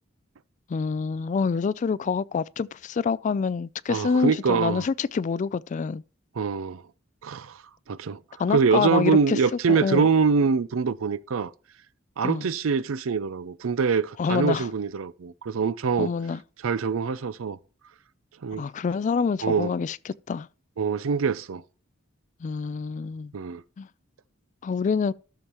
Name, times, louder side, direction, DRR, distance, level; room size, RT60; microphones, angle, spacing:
voice 1, 0.7-6.0 8.4-9.4 9.7-10.1 12.2-12.5 14.2-14.7 16.0-16.4 18.6-20.0 20.3-20.5 22.4-23.3 23.8-23.9 24.6-25.1, left 5 dB, 40° left, 0.3 m, -26 dB
voice 2, 3.9-4.9 6.3-6.8 7.2-7.6 7.9-8.2 8.5-11.5 12.2-16.1 16.6-17.6 18.4-18.6 19.4-19.7 20.8-21.6 23.3-23.6, right 5 dB, 90° right, 0.5 m, -24 dB
13.0 x 7.1 x 3.0 m
head